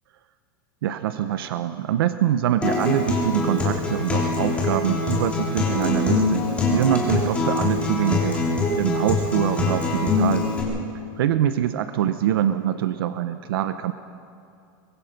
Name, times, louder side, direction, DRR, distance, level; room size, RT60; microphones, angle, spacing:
voice 1, 0.8-6.5 6.7-8.4 8.7-10.5 11.2-13.9, right 11 dB, 75° right, 10 dB, 0.8 m, -24 dB
Acoustic guitar, 2.6-10.6, left 3 dB, 10° left, 3.3 m, -24 dB
24.0 x 21.0 x 5.3 m, 2.5 s
supercardioid pair, 175°, 12 cm